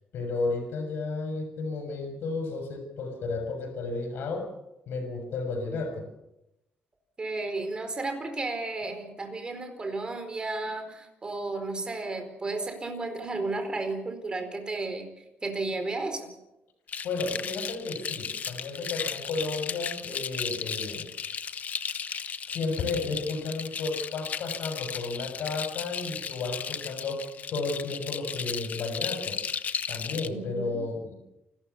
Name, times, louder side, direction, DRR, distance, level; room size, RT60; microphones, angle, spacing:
voice 1, 0.1-4.5 4.9-6.1 17.0-21.1 22.5-29.4 29.9-31.1, left 3 dB, 70° left, 6 dB, 6.7 m, -33 dB
voice 2, 7.2-16.3 30.3-30.8, right 3 dB, 25° right, 7 dB, 4.5 m, -33 dB
sound 1, 16.9-30.3, left 7 dB, 45° left, 1.0 m, -35 dB
29.0 x 13.5 x 7.1 m, 0.90 s
cardioid pair, 125°, 4 cm